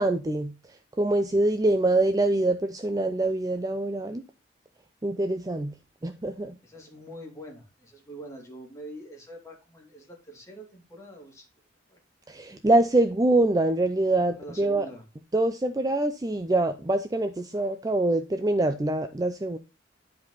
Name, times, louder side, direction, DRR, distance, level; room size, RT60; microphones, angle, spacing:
voice 1, 0.0-4.2 5.0-5.7 6.0-6.6 12.3-14.9 15.3-19.6, right 2 dB, 20° right, 0.5 m, -25 dB
voice 2, 6.6-11.5 11.9-12.0 14.4-15.0, right 1 dB, 15° left, 2.5 m, -44 dB
10.5 x 4.9 x 3.9 m
head